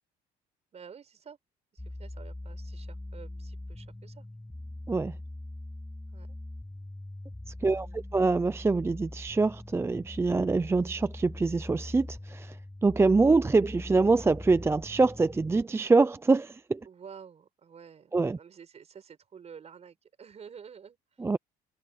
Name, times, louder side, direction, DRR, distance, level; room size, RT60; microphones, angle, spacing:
voice 1, 0.7-1.4 1.7-4.3 6.1-6.4 7.7-8.2 16.8-21.2, right 7 dB, 40° right, 4.6 m, -50 dB
sound 1, 1.8-15.6, left 1 dB, 10° left, 7.7 m, -42 dB
voice 2, 7.6-12.6 12.8-16.8 18.1-18.4 21.2-21.4, right 3 dB, 15° right, 0.5 m, -25 dB
cardioid pair, 110°, 17 cm